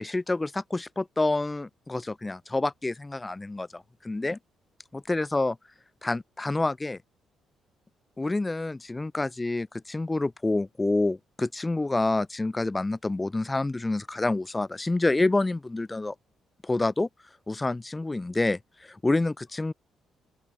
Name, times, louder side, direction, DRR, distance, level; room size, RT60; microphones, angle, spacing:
voice 1, 0.0-4.4 4.9-5.6 6.0-7.0 8.2-16.1 16.6-17.1 17.5-19.7, left 2 dB, 20° left, 5.4 m, -28 dB
open air
supercardioid pair, 70°, 0 cm